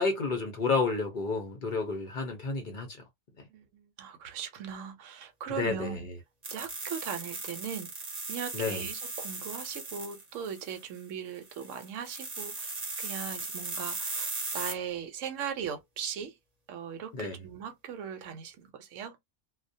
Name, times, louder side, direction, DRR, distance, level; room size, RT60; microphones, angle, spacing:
voice 1, 0.0-3.0 5.5-6.0 8.5-8.9 17.1-17.4, left 4 dB, 50° left, 0.7 m, -30 dB
voice 2, 3.5-6.1 6.5-7.9 8.3-16.3 16.7-19.2, right 7 dB, 75° right, 1.0 m, -39 dB
sound 1, 6.4-11.0 11.4-14.7, right 3 dB, 35° right, 0.8 m, -38 dB
2.3 x 2.2 x 2.6 m
omnidirectional pair, 1.3 m